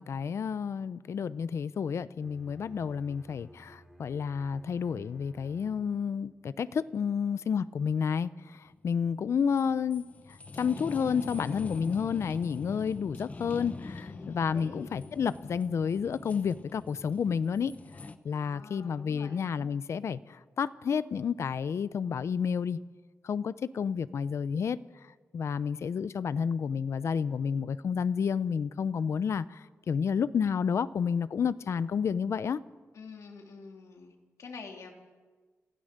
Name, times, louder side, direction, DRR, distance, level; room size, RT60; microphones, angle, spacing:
voice 1, 0.0-10.0 10.6-17.7 18.2-22.8 23.2-24.8 25.3-32.6, left 6 dB, 65° left, 16 dB, 0.7 m, -30 dB
Bowed string instrument, 2.2-6.2, equal, ahead, 2.5 m, -56 dB
sound 1, 8.7-18.2, left 3 dB, 30° left, 1.0 m, -44 dB
voice 2, 14.1-14.9 18.3-19.4 32.9-34.9, left 4 dB, 85° left, 2 dB, 2.9 m, -47 dB
26.5 x 16.5 x 6.7 m, 1.4 s
wide cardioid pair, 170°, 5 cm